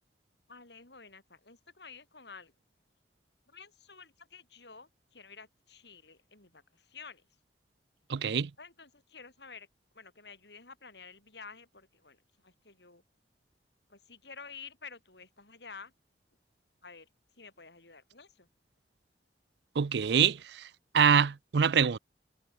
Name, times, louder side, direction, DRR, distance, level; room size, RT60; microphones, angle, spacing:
voice 1, 0.5-2.5 3.5-7.3 8.6-9.7 9.9-13.0 13.9-15.9 16.8-17.1 17.4-18.5, left 5 dB, 75° left, 6.2 m, -51 dB
voice 2, 8.1-8.5 19.8-20.7 20.9-22.0, right 7 dB, 70° right, 0.5 m, -25 dB
head